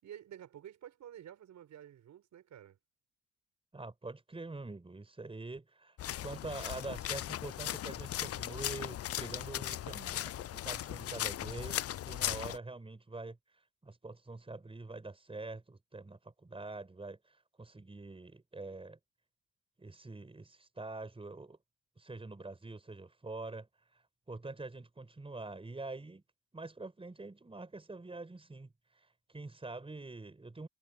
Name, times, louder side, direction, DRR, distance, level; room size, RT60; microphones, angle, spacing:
voice 1, 0.0-2.8, right 10 dB, 70° right, 6.4 m, -51 dB
voice 2, 3.7-13.4 13.8-19.0 19.8-21.6 22.0-24.0 24.3-26.2 26.5-30.7, right 3 dB, 20° right, 5.3 m, -45 dB
sound 1, 6.0-12.6, left 12 dB, 50° left, 0.5 m, -38 dB
cardioid pair, 90°, 30 cm